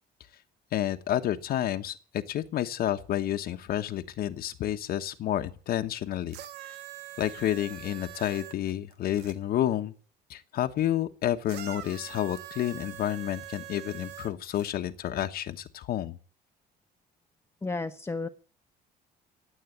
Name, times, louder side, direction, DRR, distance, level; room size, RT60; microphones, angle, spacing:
voice 1, 0.7-6.4 7.2-9.9 10.3-16.2, left 12 dB, 65° left, 7 dB, 1.2 m, -30 dB
sound 1, 6.3-9.4 11.5-14.7 15.7-15.8, right 13 dB, 85° right, 1.3 m, -44 dB
voice 2, 17.6-18.3, left 3 dB, 15° left, 7 dB, 1.1 m, -32 dB
17.0 x 8.4 x 9.2 m, 0.42 s
cardioid pair, 110°, 17 cm